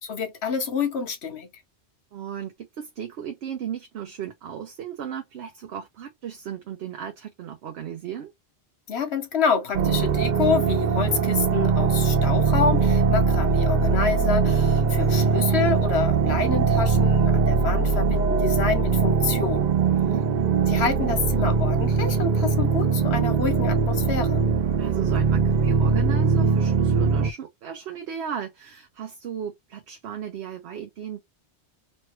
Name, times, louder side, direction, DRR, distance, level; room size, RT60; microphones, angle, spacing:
voice 1, 0.0-1.5 8.9-19.7 20.7-24.4, left 5 dB, 75° left, 1.2 m, -27 dB
voice 2, 2.1-8.3 19.8-20.3 24.8-31.2, right 9 dB, 75° right, 0.9 m, -35 dB
sound 1, 9.7-27.3, right 5 dB, 55° right, 0.5 m, -21 dB
3.1 x 2.6 x 3.0 m
omnidirectional pair, 1.1 m